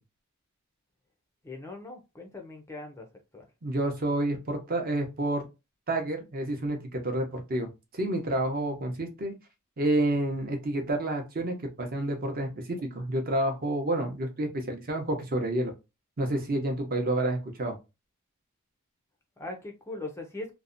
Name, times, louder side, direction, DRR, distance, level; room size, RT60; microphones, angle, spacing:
voice 1, 1.4-3.1 3.3-3.5 19.4-20.5, left 2 dB, 15° left, 0.4 m, -40 dB
voice 2, 3.6-5.4 5.9-9.3 9.8-15.7 16.2-17.8, right 1 dB, 40° right, 0.6 m, -29 dB
2.6 x 2.0 x 2.4 m
head